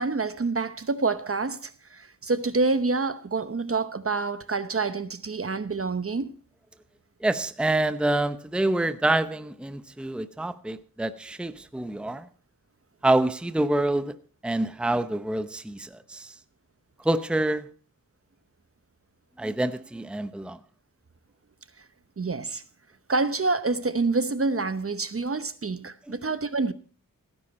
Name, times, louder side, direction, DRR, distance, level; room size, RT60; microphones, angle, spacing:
voice 1, 0.0-6.3 22.2-22.6 23.1-26.7, right 3 dB, 40° right, 0.9 m, -27 dB
voice 2, 7.2-12.2 13.0-14.2 14.4-16.3 17.0-17.7 19.4-20.6 26.1-26.2, right 2 dB, 5° right, 0.8 m, -26 dB
16.5 x 10.0 x 4.3 m
wide cardioid pair, 70°, 35 cm